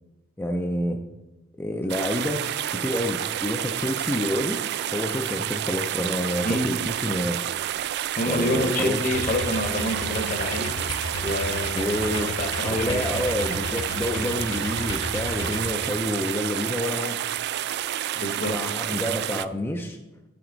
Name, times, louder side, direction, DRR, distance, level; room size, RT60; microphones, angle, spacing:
voice 1, 0.4-1.0 1.6-2.4 2.7-4.6 4.9-7.4 8.2-9.0 11.7-12.3 12.6-17.2 18.5-20.0, left 1 dB, 10° left, 2 dB, 0.5 m, -28 dB
sound 1, 1.9-19.5, right 11 dB, 55° right, 0.3 m, -29 dB
voice 2, 8.2-10.7 11.2-13.3 18.1-18.6, left 1 dB, 40° left, 7 dB, 1.0 m, -28 dB
sound 2, 9.0-15.7, left 3 dB, 75° left, 0.9 m, -34 dB
8.4 x 7.8 x 3.9 m, 1.0 s
head